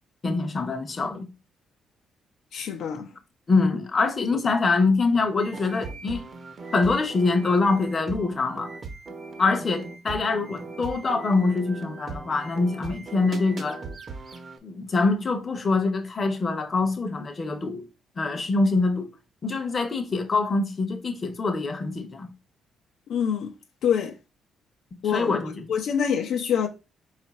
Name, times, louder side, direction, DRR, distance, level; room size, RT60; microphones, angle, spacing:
voice 1, 0.2-1.3 3.5-6.2 6.7-8.7 9.4-13.8 14.6-17.9 18.2-19.1 19.4-22.3 25.0-25.7, left 3 dB, 35° left, 0.7 m, -24 dB
voice 2, 2.5-3.1 23.1-23.5 23.8-24.1 25.0-25.4 25.7-26.7, left 8 dB, 75° left, 0.5 m, -25 dB
sound 1, 5.4-14.6, right 3 dB, 45° right, 0.8 m, -39 dB
4.3 x 2.4 x 4.1 m
cardioid pair, 90°, 0 cm